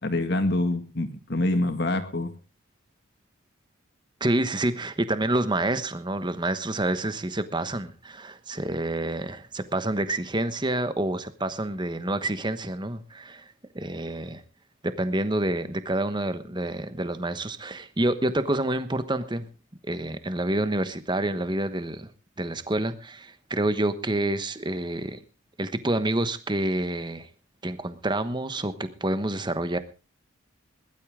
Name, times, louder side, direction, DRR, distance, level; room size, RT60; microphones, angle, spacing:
voice 1, 0.0-2.3, left 2 dB, 50° left, 8 dB, 2.1 m, -26 dB
voice 2, 4.2-13.5 13.7-14.4 14.8-19.5 19.9-22.1 22.4-25.2 25.6-27.3 27.6-29.8, right 1 dB, 20° right, 11 dB, 1.1 m, -28 dB
20.5 x 12.5 x 3.7 m, 0.32 s
head